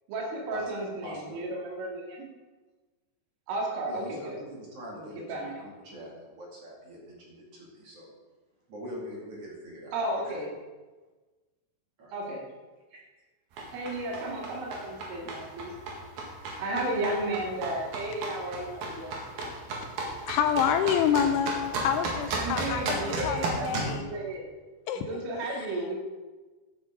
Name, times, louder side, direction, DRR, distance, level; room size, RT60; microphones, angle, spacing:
voice 1, 0.1-2.3 3.5-4.4 5.0-5.6 9.9-10.5 12.1-12.5 13.7-15.7 16.6-19.1 22.3-24.4 25.0-26.0, right 2 dB, 80° right, -1 dB, 4.5 m, -33 dB
voice 2, 1.0-1.4 3.9-8.1 8.7-10.4 12.0-12.1 12.9-13.0, equal, 45° right, -3 dB, 2.3 m, -43 dB
sound 1, 13.5-23.9, right 2 dB, 60° right, 3.0 m, -35 dB
voice 3, 20.2-24.1 24.9-25.1 25.4-25.9, left 8 dB, 80° left, 7 dB, 3.0 m, -28 dB
12.5 x 9.1 x 3.7 m, 1.3 s
omnidirectional pair, 5.6 m